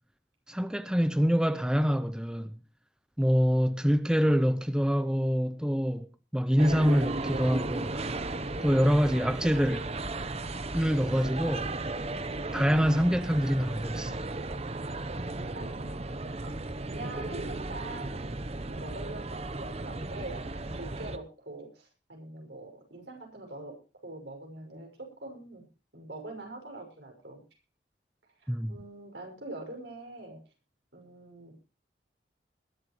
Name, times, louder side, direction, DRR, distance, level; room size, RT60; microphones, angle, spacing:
voice 1, 0.5-2.5 3.2-6.1 6.3-8.1 8.6-9.9 10.7-11.7 12.5-14.2 28.5-28.7, equal, 5° right, 0.6 m, -25 dB
sound 1, 6.6-21.2, right 2 dB, 35° right, 1.0 m, -35 dB
voice 2, 15.5-16.0 16.4-18.3 18.7-27.4 28.4-30.4 30.9-31.6, right 2 dB, 70° right, 6.4 m, -44 dB
21.0 x 12.0 x 3.1 m
head